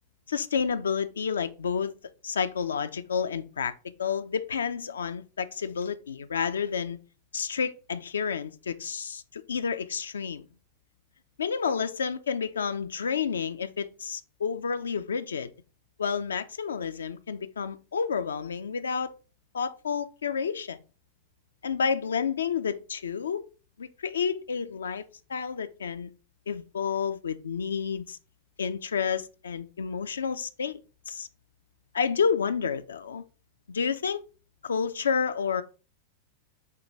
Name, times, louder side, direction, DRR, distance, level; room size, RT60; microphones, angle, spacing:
voice 1, 0.3-1.9 2.2-3.7 4.0-7.0 7.3-10.4 11.4-15.5 16.0-19.1 19.5-20.8 21.6-23.5 23.8-25.0 25.3-26.1 26.5-28.2 28.6-30.8 31.1-31.3 31.9-33.2 33.7-34.2 34.6-35.6, left 6 dB, 70° left, 0.3 m, -30 dB
6.5 x 2.2 x 3.2 m
figure-of-eight pair, 90°, 0 cm